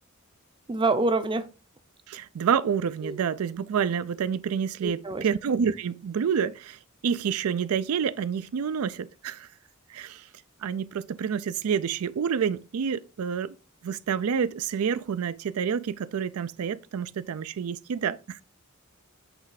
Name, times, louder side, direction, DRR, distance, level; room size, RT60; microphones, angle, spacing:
voice 1, 0.7-1.5 3.0-3.2 4.8-5.3, right 2 dB, 20° right, 0.5 m, -26 dB
voice 2, 2.1-9.5 9.9-10.3 10.6-13.5 13.8-18.4, right 7 dB, 80° right, 0.4 m, -28 dB
8.1 x 3.2 x 4.8 m
head